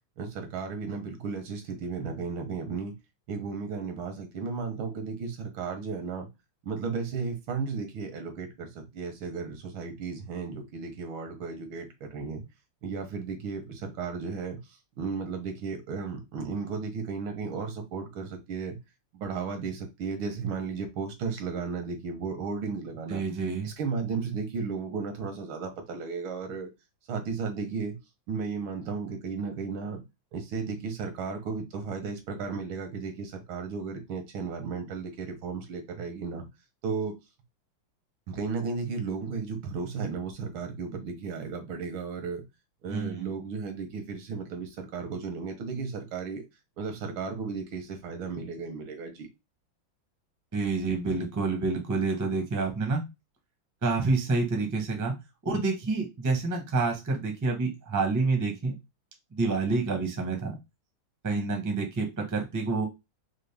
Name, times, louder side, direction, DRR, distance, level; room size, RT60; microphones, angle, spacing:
voice 1, 0.2-2.9 3.3-6.3 6.6-12.4 12.8-14.6 15.0-18.8 19.1-23.3 23.6-26.7 27.1-28.0 28.3-30.0 30.3-36.5 36.8-37.1 38.3-42.4 42.8-46.5 46.8-49.3, right 5 dB, 85° right, 6 dB, 1.8 m, -34 dB
voice 2, 23.1-23.7 42.9-43.3 50.5-53.0 53.8-55.1 55.4-58.7 59.3-60.6 61.2-62.8, right 3 dB, 20° right, 2 dB, 0.4 m, -28 dB
4.9 x 2.1 x 3.3 m, 0.22 s
omnidirectional pair, 2.2 m